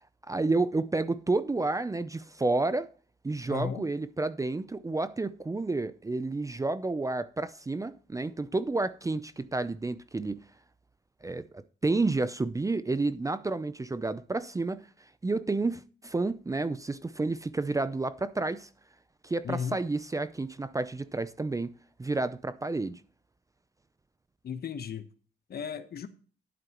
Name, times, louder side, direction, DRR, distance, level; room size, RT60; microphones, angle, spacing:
voice 1, 0.3-2.9 3.2-10.4 11.2-14.9 15.2-18.7 19.2-21.7 22.0-23.0, right 3 dB, 15° right, 0.6 m, -30 dB
voice 2, 3.5-3.9 19.4-19.8 24.4-25.1 25.5-26.1, left 7 dB, 50° left, 1.2 m, -35 dB
11.0 x 9.1 x 3.0 m
cardioid pair, 90°, 20 cm